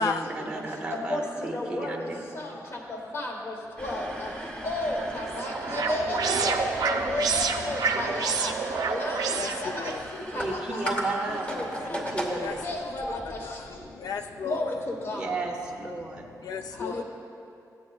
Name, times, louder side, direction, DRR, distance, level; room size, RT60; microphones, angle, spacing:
voice 1, 0.0-2.2 10.3-12.6 15.1-16.2, right 2 dB, 15° right, -2 dB, 0.7 m, -33 dB
voice 2, 0.9-4.3 4.6-8.5 8.8-10.9 11.3-13.6 14.4-15.2 16.8-17.0, left 1 dB, 40° left, 0 dB, 1.2 m, -33 dB
sound 1, 3.8-14.1, right 1 dB, 20° left, 1.0 m, -38 dB
sound 2, 4.8-10.0, right 5 dB, 70° right, 0.5 m, -29 dB
voice 3, 9.3-10.0 12.4-14.7 16.4-17.0, left 5 dB, 70° left, 7 dB, 0.4 m, -34 dB
13.0 x 8.4 x 2.3 m, 2.5 s
wide cardioid pair, 155°, 7 cm